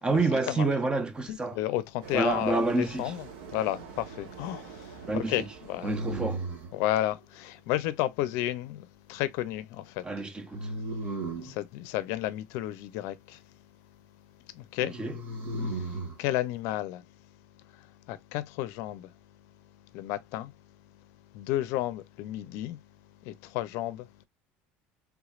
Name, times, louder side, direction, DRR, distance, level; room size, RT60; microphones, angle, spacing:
voice 1, 0.0-1.6 2.1-3.1 5.0-5.5 5.8-6.4 10.0-10.7 14.8-15.2, right 3 dB, 15° right, 0.7 m, -28 dB
voice 2, 1.3-3.2 3.5-5.9 6.7-10.0 11.4-13.4 14.5-15.0 15.7-17.0 17.7-19.1 19.9-20.5 21.3-22.8 23.2-24.2, left 14 dB, 70° left, 0.5 m, -32 dB
sound 1, 2.0-7.1, right 5 dB, 90° right, 1.2 m, -46 dB
sound 2, 3.1-3.7 5.8-6.8 10.5-11.6 14.9-16.2, right 1 dB, 35° right, 1.6 m, -35 dB
3.5 x 3.1 x 2.3 m
supercardioid pair, 125°, 5 cm